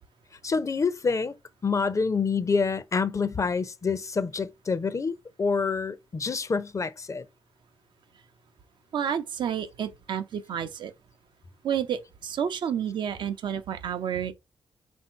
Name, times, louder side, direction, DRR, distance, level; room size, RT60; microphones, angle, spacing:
voice 1, 0.4-1.3 1.6-7.3, left 5 dB, 40° left, 0.6 m, -27 dB
voice 2, 8.9-10.9 11.6-14.3, right 8 dB, 70° right, 0.5 m, -30 dB
3.6 x 2.7 x 4.3 m
supercardioid pair, 40°, 8 cm